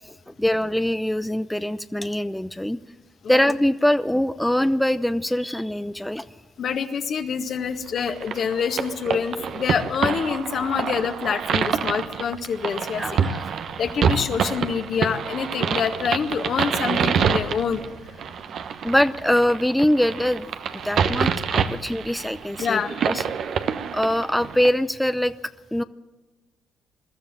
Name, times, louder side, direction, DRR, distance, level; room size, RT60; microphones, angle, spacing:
voice 1, 0.3-2.8 3.3-6.2 13.0-13.4 18.8-23.2 23.9-25.3 25.7-25.8, left 1 dB, 5° left, 11 dB, 0.7 m, -23 dB
voice 2, 6.6-13.2 13.8-17.8 22.6-23.1, left 6 dB, 60° left, 6 dB, 1.9 m, -26 dB
sound 1, 8.0-24.7, right 7 dB, 65° right, 1.1 m, -27 dB
21.5 x 13.0 x 9.1 m, 1.2 s
supercardioid pair, 60°, 0 cm